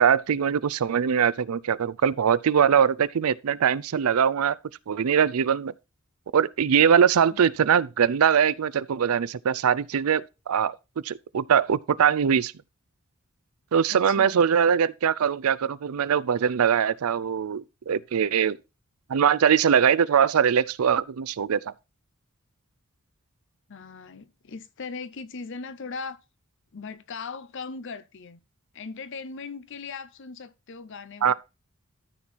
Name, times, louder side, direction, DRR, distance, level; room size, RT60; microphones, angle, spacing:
voice 1, 0.0-4.6 4.9-5.7 6.3-10.7 11.0-12.5 13.7-18.6 19.1-21.7 31.2-31.3, right 7 dB, 80° right, 0.4 m, -22 dB
voice 2, 13.9-14.4 23.7-26.2 26.7-28.4 28.7-31.3, left 4 dB, 55° left, 0.6 m, -39 dB
13.0 x 4.5 x 4.1 m
head